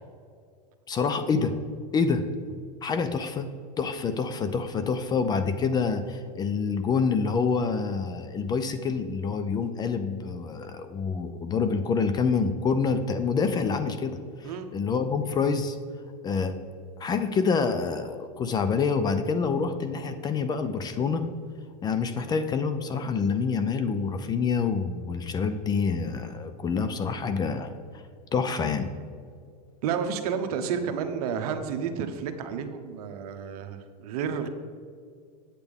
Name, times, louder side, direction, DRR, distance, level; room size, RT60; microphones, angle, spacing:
voice 1, 0.9-1.6 1.9-2.3 2.8-3.5 3.8-15.8 16.2-16.5 17.0-21.3 21.8-27.7 28.3-28.9, left 5 dB, 20° left, 10 dB, 0.4 m, -27 dB
voice 2, 29.8-34.5, right 7 dB, 70° right, 7 dB, 0.9 m, -31 dB
8.2 x 8.1 x 3.5 m, 2.1 s
supercardioid pair, 135°, 20 cm